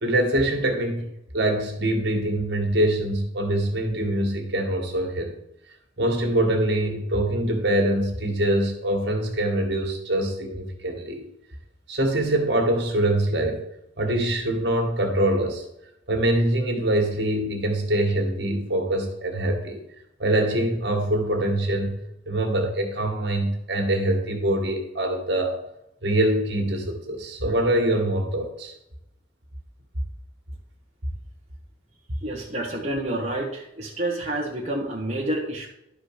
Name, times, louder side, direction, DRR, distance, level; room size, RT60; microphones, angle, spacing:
voice 1, 0.0-5.3 6.0-11.2 11.9-13.6 14.0-15.6 16.1-19.8 20.2-22.0 22.3-25.6 26.0-28.7, right 1 dB, 55° right, 3 dB, 2.0 m, -24 dB
voice 2, 32.2-35.7, right 1 dB, 35° right, -3 dB, 1.3 m, -29 dB
11.5 x 4.9 x 6.5 m, 0.84 s
head